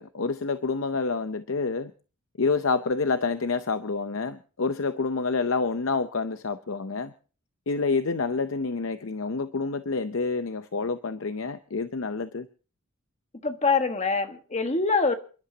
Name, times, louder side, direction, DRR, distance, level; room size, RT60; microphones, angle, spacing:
voice 1, 0.0-1.9 2.4-7.1 7.7-12.5, left 4 dB, 65° left, 0.7 m, -28 dB
voice 2, 13.4-15.2, left 4 dB, 30° left, 1.4 m, -24 dB
28.5 x 11.5 x 2.8 m
head